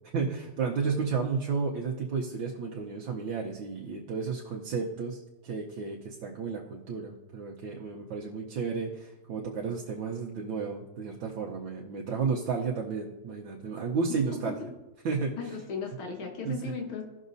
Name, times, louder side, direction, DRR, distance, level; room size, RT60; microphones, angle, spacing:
voice 1, 0.1-14.6 15.0-15.5 16.4-16.5, right 5 dB, 75° right, -1 dB, 1.6 m, -32 dB
voice 2, 14.1-14.6 15.4-17.0, left 5 dB, 90° left, 2 dB, 2.0 m, -36 dB
16.5 x 6.4 x 2.7 m, 1.0 s
omnidirectional pair, 2.2 m